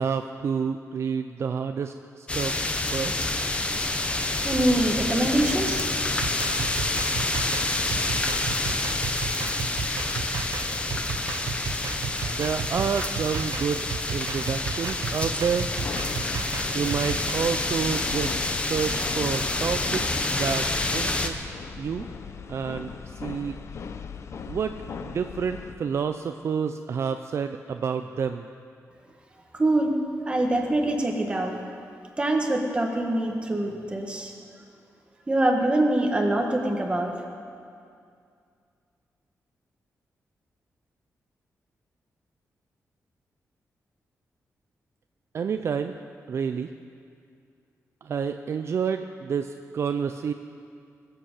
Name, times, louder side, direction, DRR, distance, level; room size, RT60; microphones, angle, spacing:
voice 1, 0.0-2.5 2.9-3.2 12.3-15.7 16.7-20.7 20.9-21.5 21.8-22.1 22.5-23.6 24.5-24.8 25.0-28.5 45.3-45.9 46.3-46.7 48.0-50.3, right 6 dB, 50° right, 8 dB, 0.4 m, -29 dB
sound 1, 2.3-21.3, left 2 dB, 20° left, 0.8 m, -28 dB
voice 2, 4.4-6.0 29.5-30.0 30.2-31.5 32.2-34.3 35.3-37.1, right 1 dB, 20° right, 2 dB, 1.5 m, -24 dB
sound 2, 6.2-17.3, right 5 dB, 85° right, 0.9 m, -34 dB
sound 3, 15.7-25.7, left 6 dB, 55° left, 0.6 m, -39 dB
21.5 x 7.8 x 6.6 m, 2.4 s
wide cardioid pair, 160°, 6 cm